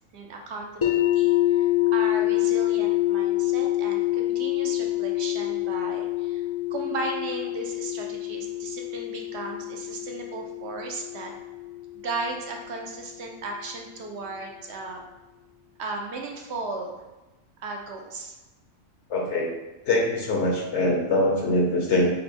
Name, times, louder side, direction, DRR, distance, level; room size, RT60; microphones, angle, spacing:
voice 1, 0.1-6.4 6.7-11.3 12.0-15.0 15.8-17.0 17.6-18.4, right 3 dB, 65° right, 1 dB, 0.9 m, -35 dB
sound 1, 0.8-12.7, left 15 dB, 55° left, 0.3 m, -26 dB
voice 2, 19.1-19.5 19.8-22.1, left 1 dB, 70° left, -1 dB, 1.2 m, -23 dB
5.3 x 2.1 x 4.3 m, 1.1 s
omnidirectional pair, 1.3 m